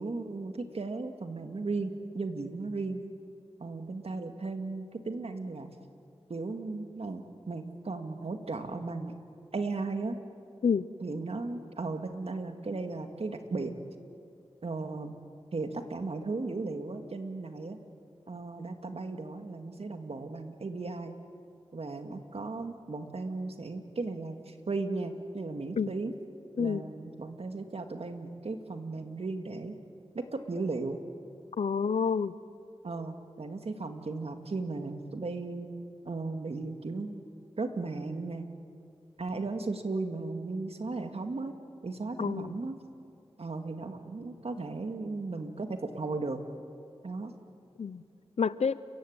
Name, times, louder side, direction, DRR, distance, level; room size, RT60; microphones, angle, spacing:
voice 1, 0.0-3.0 3.6-5.7 6.3-9.1 9.5-10.2 11.0-13.7 14.6-15.1 15.5-17.8 18.3-21.2 21.7-26.1 26.6-29.7 30.1-31.0 32.8-35.7 36.1-37.2 37.6-38.5 39.2-41.5 41.8-42.8 43.4-46.4 47.0-47.3, right 3 dB, 65° right, 6 dB, 2.0 m, -36 dB
voice 2, 31.6-32.3 42.2-42.6 47.8-48.0 48.4-48.8, left 6 dB, 80° left, 17 dB, 0.7 m, -28 dB
29.5 x 15.5 x 8.8 m, 2.4 s
cardioid pair, 50°, 11 cm